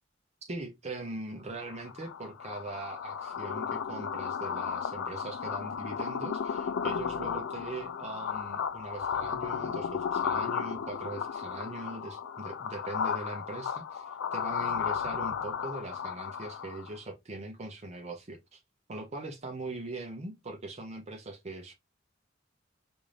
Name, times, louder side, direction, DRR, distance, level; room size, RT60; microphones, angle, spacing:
voice 1, 0.5-18.6 18.9-21.7, right 2 dB, 35° right, 0.6 m, -41 dB
sound 1, 1.6-17.0, left 7 dB, 90° left, 0.4 m, -34 dB
3.7 x 2.6 x 3.2 m
head